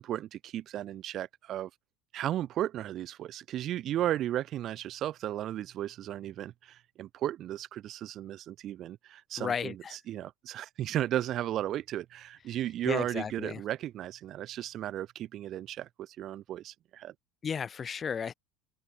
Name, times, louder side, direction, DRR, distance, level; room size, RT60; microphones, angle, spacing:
voice 1, 0.0-1.7 2.1-17.1, right 12 dB, 50° right, 5.2 m, -35 dB
voice 2, 9.4-10.0 12.8-13.6 17.4-18.3, left 6 dB, 30° left, 2.9 m, -34 dB
supercardioid pair, 100°, 0 cm